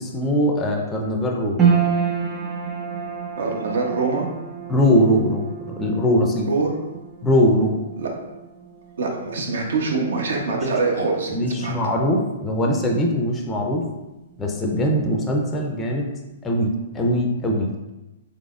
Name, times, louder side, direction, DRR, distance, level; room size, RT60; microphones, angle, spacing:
voice 1, 0.0-1.6 4.7-6.5 7.2-7.9 10.5-10.7 11.3-13.9 14.4-16.1 16.4-17.8, equal, 15° left, 1 dB, 0.4 m, -21 dB
sound 1, 1.6-14.0 14.2-15.2 15.6-15.7, right 6 dB, 20° right, 0.7 m, -29 dB
voice 2, 3.4-4.3 6.5-6.8 8.0-8.1 9.0-11.7, right 4 dB, 80° right, 1 dB, 0.7 m, -24 dB
3.9 x 2.9 x 2.4 m, 1.0 s
hypercardioid pair, 145°, 0 cm